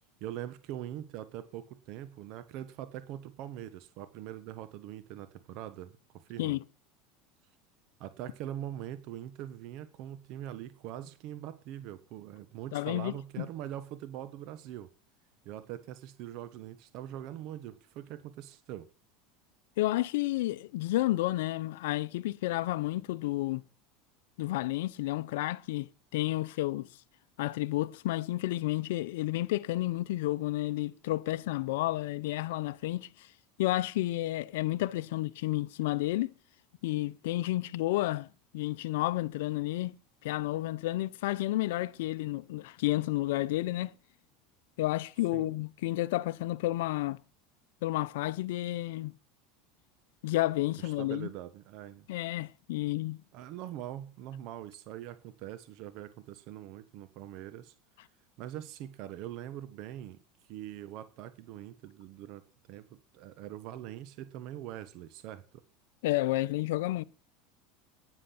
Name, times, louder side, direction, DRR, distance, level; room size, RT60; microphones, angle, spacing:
voice 1, 0.2-6.6 8.0-14.9 15.4-18.9 45.3-45.5 50.8-52.1 53.3-57.7 58.4-60.2 60.4-62.4 62.7-65.4, right 12 dB, 60° right, 1.1 m, -42 dB
voice 2, 12.7-13.5 19.8-23.6 24.4-26.9 27.4-33.3 33.6-36.3 36.8-38.3 38.5-40.0 40.2-43.9 44.8-47.2 47.8-49.1 50.2-51.3 52.1-53.2 66.0-67.0, left 17 dB, 80° left, 0.6 m, -31 dB
10.0 x 9.8 x 5.9 m
supercardioid pair, 110°, 0 cm